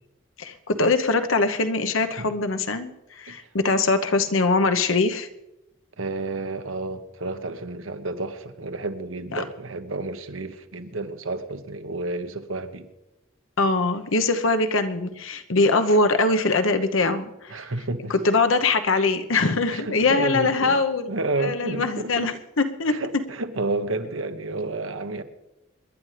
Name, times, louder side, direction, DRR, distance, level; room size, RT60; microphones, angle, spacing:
voice 1, 0.4-5.3 9.3-9.4 13.6-17.5 18.1-21.1 21.4-23.0, left 3 dB, 80° left, 1.0 m, -22 dB
voice 2, 6.0-12.9 17.5-18.1 19.7-20.8 21.1-22.3 22.8-25.2, right 2 dB, 85° right, 1.1 m, -30 dB
26.5 x 11.0 x 3.3 m
head